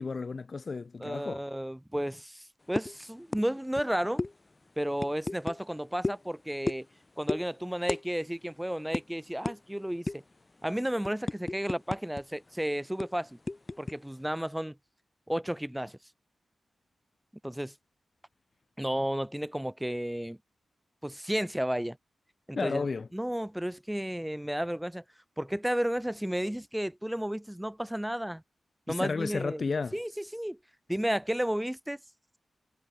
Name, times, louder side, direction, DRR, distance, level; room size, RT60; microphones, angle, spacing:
voice 1, 0.0-1.4 22.5-23.1 28.9-30.0, left 4 dB, 50° left, 1.8 m, -32 dB
voice 2, 1.0-4.2 4.8-6.9 7.2-10.2 10.6-13.4 13.8-14.8 15.3-16.0 17.4-17.7 18.8-20.4 21.0-22.0 22.5-22.9 23.1-25.0 25.4-28.4 28.9-30.6 30.9-32.0, equal, 5° right, 1.8 m, -32 dB
sound 1, 2.8-3.0 3.3-3.5 3.7-3.9 4.2-4.3 5.0-5.6 6.0-6.2 6.7-6.9 7.3-7.4 7.9-8.0 8.3-8.5 8.9-9.0 9.4-9.6 10.1-10.3 10.7-12.2 12.5-12.6 13.0-13.9, left 2 dB, 30° left, 0.7 m, -33 dB
cardioid pair, 60°, 0 cm